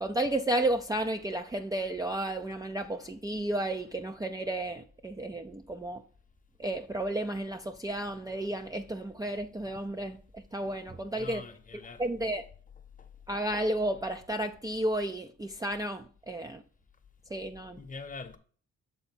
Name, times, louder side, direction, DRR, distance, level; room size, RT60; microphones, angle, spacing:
voice 1, 0.0-6.0 6.6-11.4 12.0-12.4 13.3-16.6 17.3-17.8, right 1 dB, 10° right, 0.4 m, -32 dB
voice 2, 11.1-12.2 12.8-13.1 17.7-18.4, left 4 dB, 25° left, 0.9 m, -44 dB
7.1 x 3.9 x 4.2 m
cardioid pair, 90°, 30 cm